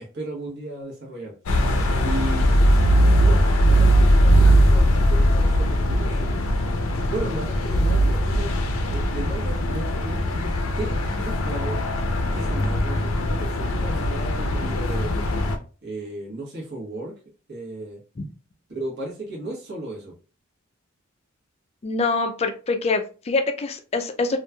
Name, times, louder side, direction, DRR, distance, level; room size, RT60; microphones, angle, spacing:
voice 1, 0.0-1.3 2.0-2.8 3.1-6.5 6.9-8.6 8.9-11.8 12.3-15.2 15.8-17.1 17.5-18.0 18.7-20.1, right 2 dB, 55° right, -3 dB, 1.1 m, -35 dB
sound 1, 1.5-15.6, equal, 90° left, 0.5 m, -20 dB
voice 2, 21.8-24.4, left 3 dB, 30° left, 7 dB, 0.3 m, -25 dB
3.0 x 2.4 x 2.2 m, 0.36 s
head